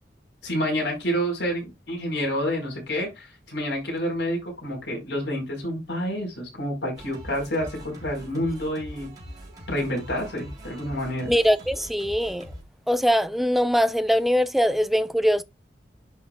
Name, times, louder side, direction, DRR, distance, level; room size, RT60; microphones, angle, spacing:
voice 1, 0.4-9.1 9.7-11.3, equal, 90° left, 4.7 m, -28 dB
Singing, 7.0-12.6, equal, 20° right, 3.6 m, -42 dB
voice 2, 11.3-12.5 12.9-15.4, equal, ahead, 0.5 m, -22 dB
11.0 x 5.4 x 2.3 m
head